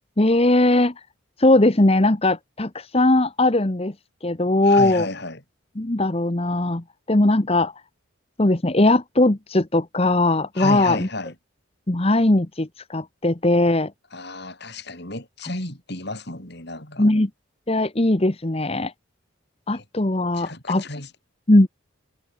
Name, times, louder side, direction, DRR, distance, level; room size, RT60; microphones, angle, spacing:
voice 1, 0.2-1.0 1.4-3.9 4.2-5.1 5.8-7.7 8.4-11.1 11.9-13.9 17.0-17.3 17.7-18.9 19.7-20.8 21.5-21.7, left 2 dB, 30° left, 1.1 m, -19 dB
voice 2, 4.6-5.4 10.5-11.3 14.1-17.2 19.7-19.8 20.3-21.1, left 2 dB, 50° left, 6.7 m, -32 dB
head